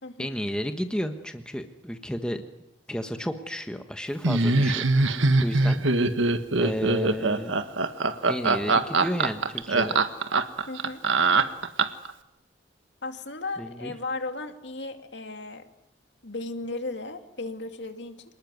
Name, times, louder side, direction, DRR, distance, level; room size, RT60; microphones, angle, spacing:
voice 1, 0.2-2.4 2.9-5.8 6.6-7.5 8.3-10.0 13.6-13.9, equal, 5° left, 6 dB, 1.3 m, -32 dB
Laughter, 4.2-12.1, right 3 dB, 85° right, 1.6 m, -22 dB
voice 2, 10.7-11.0 13.0-15.7 16.2-18.2, left 2 dB, 65° left, 6 dB, 2.3 m, -35 dB
27.0 x 19.5 x 9.4 m, 0.82 s
head